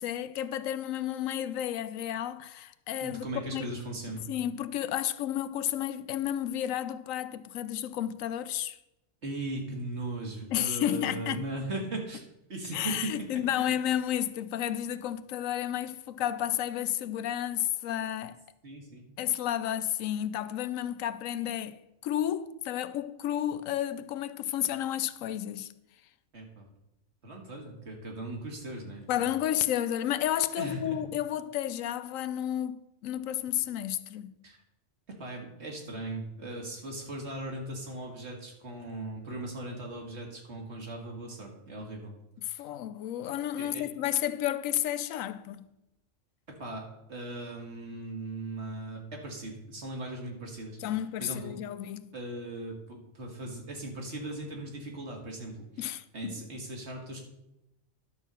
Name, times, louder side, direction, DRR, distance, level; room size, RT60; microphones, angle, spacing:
voice 1, 0.0-3.7 4.3-8.8 10.5-11.4 12.7-18.4 19.2-21.8 22.0-25.7 29.1-34.3 42.5-45.6 50.8-52.1 55.8-56.4, left 11 dB, 85° left, 1.0 m, -32 dB
voice 2, 3.0-4.3 9.2-12.2 12.5-13.3 13.6-13.7 18.6-19.0 26.3-26.7 27.2-29.2 30.6-31.0 34.4-34.6 35.1-42.1 42.5-42.6 43.6-43.8 46.6-50.9 51.2-51.6 52.1-57.2, right 2 dB, 55° right, 2.1 m, -38 dB
11.0 x 4.5 x 6.7 m
omnidirectional pair, 1.3 m